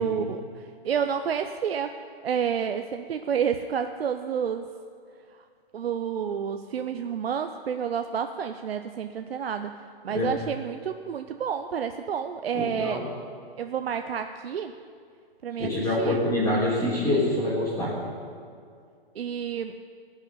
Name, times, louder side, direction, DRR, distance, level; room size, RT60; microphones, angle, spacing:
voice 1, 0.0-1.9 2.2-4.7 5.3-5.4 5.7-9.7 10.0-13.0 13.6-14.7 15.4-16.2 19.1-19.7, right 7 dB, 80° right, 7 dB, 0.8 m, -29 dB
voice 2, 12.5-13.1 15.6-17.9, left 1 dB, 10° left, -7 dB, 3.7 m, -26 dB
17.5 x 6.6 x 9.5 m, 2.2 s
hypercardioid pair, 140°, 30 cm